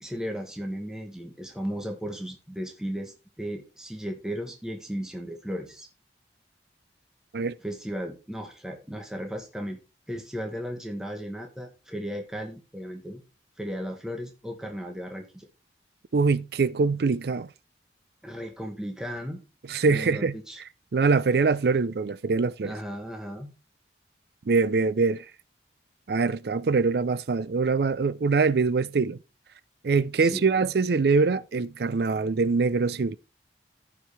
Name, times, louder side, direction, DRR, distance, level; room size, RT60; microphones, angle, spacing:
voice 1, 0.0-5.9 7.6-9.8 10.1-13.2 13.6-15.5 18.2-19.4 19.9-20.6 22.6-23.5 30.2-30.5, equal, 5° right, 1.1 m, -35 dB
voice 2, 16.1-17.5 19.7-20.3 20.9-22.7 24.5-25.2 26.1-29.2 29.8-33.2, right 4 dB, 60° right, 0.4 m, -23 dB
14.5 x 4.8 x 3.4 m
head